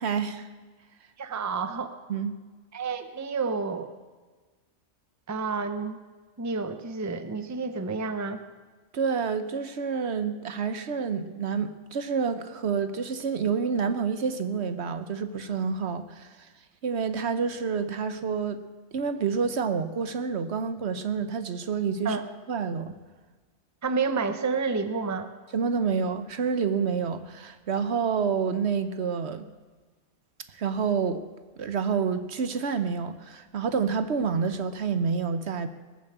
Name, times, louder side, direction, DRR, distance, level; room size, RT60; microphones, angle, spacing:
voice 1, 0.0-0.5 2.1-2.3 8.9-16.3 16.8-18.6 18.9-22.2 22.5-22.9 25.5-29.5 30.5-31.2 31.6-35.7, right 6 dB, 65° right, 10 dB, 1.1 m, -28 dB
voice 2, 1.2-1.9 2.7-3.9 5.3-6.0 6.4-8.4 22.0-22.3 23.8-25.3, right 4 dB, 15° right, 9 dB, 0.7 m, -29 dB
19.5 x 7.3 x 7.9 m, 1.4 s
omnidirectional pair, 1.3 m